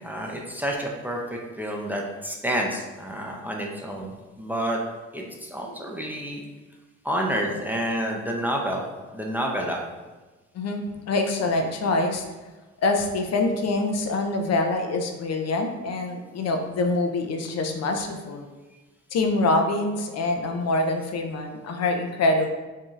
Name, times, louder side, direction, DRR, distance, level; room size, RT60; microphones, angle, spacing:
voice 1, 0.0-4.8 5.1-6.4 7.0-9.8, equal, 5° right, -1 dB, 0.5 m, -29 dB
voice 2, 10.5-12.2 12.8-18.5 19.1-22.5, left 2 dB, 55° left, 4 dB, 0.5 m, -25 dB
4.7 x 2.8 x 2.4 m, 1.2 s
cardioid pair, 90°, 30 cm